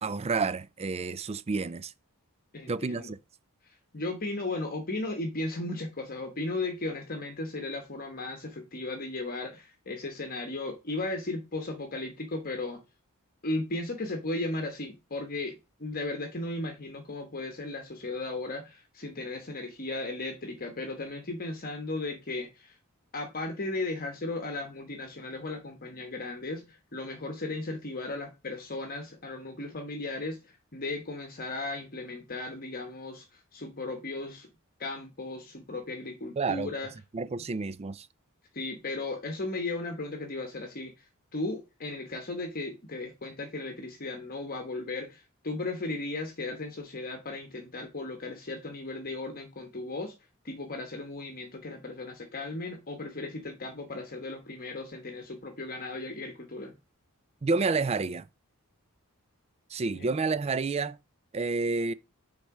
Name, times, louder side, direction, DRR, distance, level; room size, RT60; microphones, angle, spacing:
voice 1, 0.0-1.9 2.7-3.2 36.4-36.7 37.1-38.1 57.4-58.3 59.7-61.0 61.3-61.9, right 4 dB, 30° right, 0.4 m, -29 dB
voice 2, 2.5-3.1 3.6-12.8 13.4-22.7 23.1-34.5 34.8-36.9 38.5-50.1 50.4-56.7 59.9-60.1, left 2 dB, 40° left, 1.1 m, -36 dB
6.4 x 4.1 x 4.7 m
head